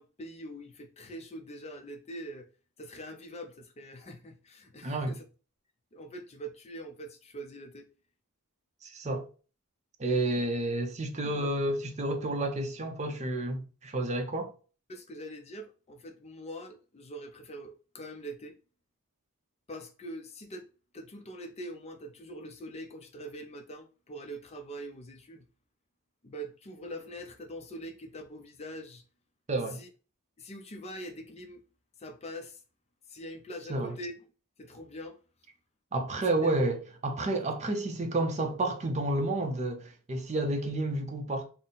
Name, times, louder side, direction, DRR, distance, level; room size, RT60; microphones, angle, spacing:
voice 1, 0.0-2.5 2.8-5.2 5.9-7.9 10.3-10.4 11.2-11.5 14.9-18.6 19.7-20.7 20.9-25.4 26.2-29.0 29.7-29.9 30.4-31.6 32.0-32.6 33.1-34.1 34.6-35.2 37.3-37.4, equal, 30° left, 0.5 m, -43 dB
voice 2, 4.8-5.1 8.8-9.2 10.0-14.5 29.5-29.8 33.7-33.9 35.9-36.8 37.0-41.4, right 2 dB, 30° right, 0.5 m, -30 dB
4.0 x 2.0 x 3.8 m
head